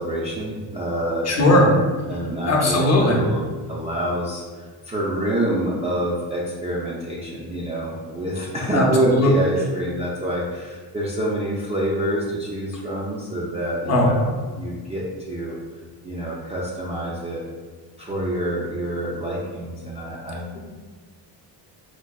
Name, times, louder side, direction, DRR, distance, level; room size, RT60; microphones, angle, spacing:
voice 1, 0.0-1.8 2.1-15.6 16.0-17.4 18.0-20.5, right 1 dB, 15° right, -7 dB, 0.3 m, -27 dB
voice 2, 1.3-1.6 2.5-3.2 8.7-9.3 13.9-14.2, left 1 dB, 35° left, -1 dB, 0.6 m, -18 dB
4.6 x 2.1 x 2.3 m, 1.4 s
cardioid pair, 115°, 45 cm